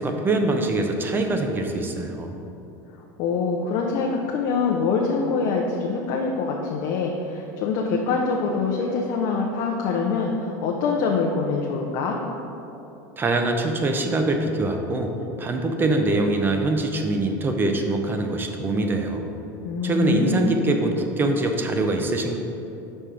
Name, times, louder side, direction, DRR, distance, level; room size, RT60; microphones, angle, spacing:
voice 1, 0.0-2.4 13.2-15.1 15.4-19.3 19.8-22.4, right 2 dB, 20° right, 4 dB, 0.6 m, -23 dB
voice 2, 3.2-12.2 19.6-20.6, left 4 dB, 55° left, 0 dB, 0.6 m, -24 dB
5.4 x 4.3 x 4.9 m, 2.9 s
supercardioid pair, 120°, 10 cm